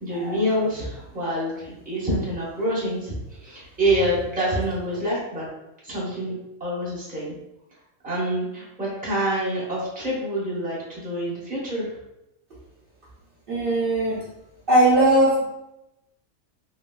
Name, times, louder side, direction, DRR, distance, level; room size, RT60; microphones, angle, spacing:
voice 1, 0.0-5.5 5.8-6.3 6.6-7.3 8.0-11.9, right 1 dB, 5° right, -8 dB, 0.9 m, -26 dB
voice 2, 13.5-14.2 14.7-15.4, right 1 dB, 50° right, -9 dB, 0.8 m, -19 dB
3.1 x 3.1 x 2.2 m, 0.90 s
omnidirectional pair, 1.5 m